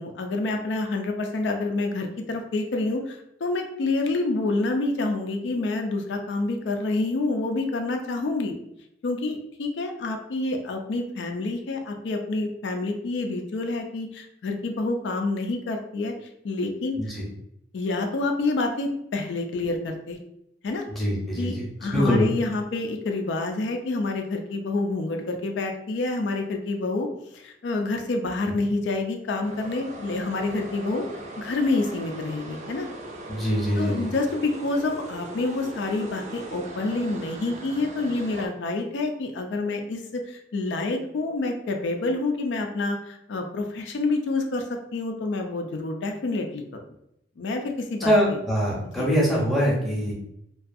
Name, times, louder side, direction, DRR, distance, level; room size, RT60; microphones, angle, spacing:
voice 1, 0.0-8.5 9.0-16.1 16.4-17.0 17.7-20.2 20.6-20.9 21.4-21.5 21.8-27.1 27.3-31.1 31.4-32.9 33.8-44.6 44.9-46.6 47.4-48.1 49.0-49.1, left 2 dB, 80° left, 4 dB, 0.4 m, -28 dB
voice 2, 20.9-22.3 28.4-28.5 33.3-34.1 48.0-50.1, equal, ahead, -5 dB, 0.6 m, -24 dB
sound 1, 29.4-38.5, right 2 dB, 40° right, 0.3 m, -40 dB
2.4 x 2.3 x 2.5 m, 0.78 s
head